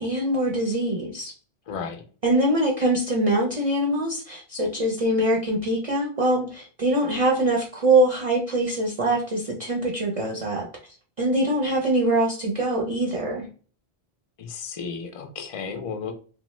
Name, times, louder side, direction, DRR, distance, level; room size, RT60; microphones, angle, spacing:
voice 1, 0.0-1.3 2.2-10.7 11.2-13.5, right 1 dB, 45° right, -1 dB, 0.4 m, -23 dB
voice 2, 1.7-2.1 14.4-16.1, left 5 dB, 60° left, 6 dB, 0.3 m, -33 dB
3.0 x 2.0 x 3.0 m, 0.40 s
omnidirectional pair, 1.1 m